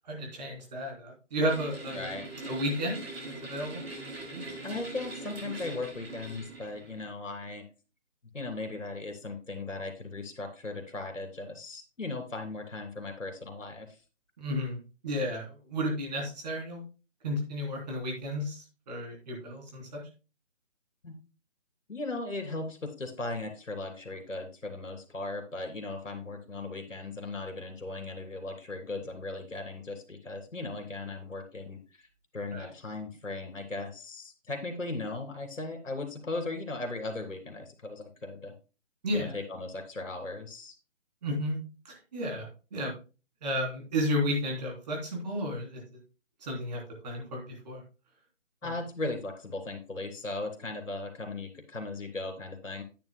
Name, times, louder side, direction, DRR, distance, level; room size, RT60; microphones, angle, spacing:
voice 1, 0.1-2.1 2.5-3.0 3.4-3.8 4.3-4.4 14.4-14.8 15.0-16.8 17.2-20.0 32.5-32.7 39.0-39.3 41.2-41.6 41.9-42.9 43.4-45.8 46.4-47.8 48.6-48.7, equal, 35° right, -1 dB, 3.4 m, -32 dB
sound 1, 1.5-7.1, right 2 dB, 50° right, 5.6 m, -42 dB
voice 2, 1.9-2.3 4.6-7.6 8.3-13.9 21.0-21.1 21.9-32.1 32.3-38.5 39.1-40.7 48.6-52.8, left 2 dB, 75° left, 5 dB, 3.0 m, -37 dB
10.5 x 9.3 x 2.2 m, 0.31 s
figure-of-eight pair, 155°, 38 cm